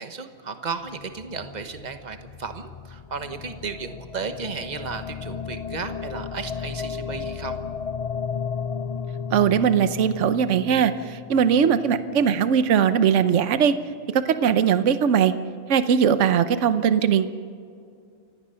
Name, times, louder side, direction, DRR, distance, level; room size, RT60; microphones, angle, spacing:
voice 1, 0.0-7.6, right 5 dB, 35° right, 8 dB, 1.2 m, -34 dB
sound 1, 0.8-13.0, left 6 dB, 70° left, 0.3 m, -35 dB
voice 2, 9.3-13.7 14.1-15.3 15.7-17.3, right 8 dB, 65° right, 12 dB, 1.1 m, -20 dB
29.5 x 16.5 x 5.7 m, 2.3 s
omnidirectional pair, 1.4 m